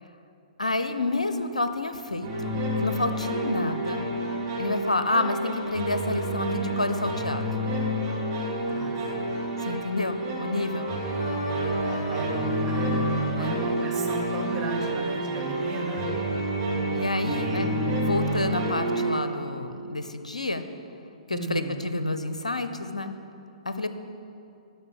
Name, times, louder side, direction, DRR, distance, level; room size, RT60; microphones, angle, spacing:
voice 1, 0.6-4.0 4.6-7.5 9.6-10.9 13.3-13.5 16.9-17.7 18.0-20.6 21.3-23.1 23.6-23.9, left 2 dB, 80° left, 10 dB, 0.8 m, -29 dB
sound 1, 2.2-19.1, right 1 dB, 35° right, 2.7 m, -29 dB
sound 2, 6.0-9.9 10.3-15.1, left 2 dB, 40° left, 2.2 m, -42 dB
voice 2, 11.8-16.1 17.2-17.7 21.3-21.9, right 4 dB, 15° right, -2 dB, 1.8 m, -36 dB
12.0 x 5.5 x 8.6 m, 2.6 s
figure-of-eight pair, 115°, 4 cm